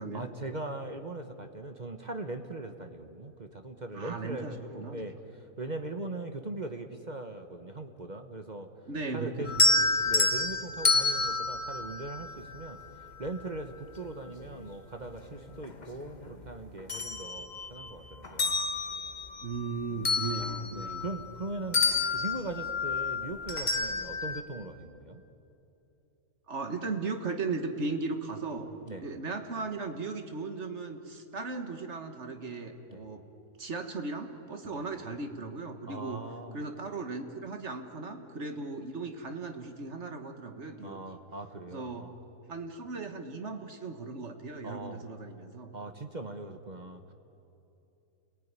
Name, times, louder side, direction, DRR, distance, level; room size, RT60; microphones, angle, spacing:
voice 1, 0.1-8.7 9.1-9.5 10.0-12.8 13.2-18.6 19.9-20.1 20.7-25.2 28.9-29.1 32.9-33.0 34.6-34.8 35.9-36.6 40.8-42.1 44.6-45.0 45.7-47.1, right 2 dB, 30° right, 7 dB, 1.1 m, -40 dB
voice 2, 3.9-5.1 8.9-9.9 19.4-21.0 26.5-33.2 33.6-36.2 36.5-41.2 41.7-42.0 42.5-45.7, right 3 dB, 50° right, 6 dB, 1.8 m, -37 dB
sound 1, 9.5-12.8 14.4-14.5 15.1-16.3 16.6-17.9 18.2-21.4 21.7-24.4, left 3 dB, 30° left, 1.3 m, -29 dB
29.0 x 19.5 x 9.7 m, 3.0 s
omnidirectional pair, 1.6 m